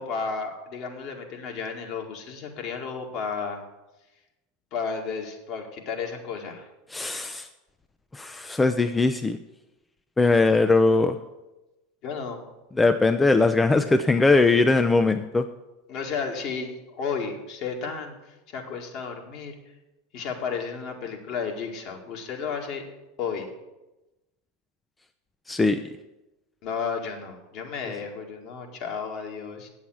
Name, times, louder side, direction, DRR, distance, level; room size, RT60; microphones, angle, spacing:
voice 1, 0.0-3.6 4.7-6.7 12.0-12.4 15.9-18.1 18.5-19.5 20.1-22.8 23.2-23.5 26.6-29.7, left 5 dB, 50° left, 2 dB, 2.0 m, -33 dB
voice 2, 6.9-7.5 8.1-9.4 10.2-11.2 12.7-15.5 25.5-25.8, left 3 dB, 15° left, 8 dB, 0.5 m, -20 dB
8.5 x 7.2 x 7.7 m, 1.0 s
hypercardioid pair, 85°, 0 cm